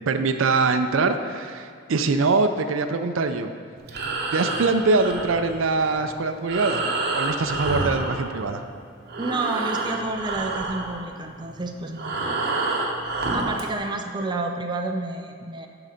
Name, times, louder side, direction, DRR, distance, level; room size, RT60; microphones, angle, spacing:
voice 1, 0.1-3.5 4.3-6.8 7.1-8.6, right 3 dB, 80° right, 8 dB, 0.5 m, -23 dB
Breathing, 3.8-8.8 9.0-13.7, right 2 dB, 50° right, 1.0 m, -29 dB
voice 2, 9.2-12.4 13.3-15.7, right 2 dB, 20° right, 3 dB, 0.5 m, -30 dB
11.0 x 3.9 x 5.7 m, 2.2 s
head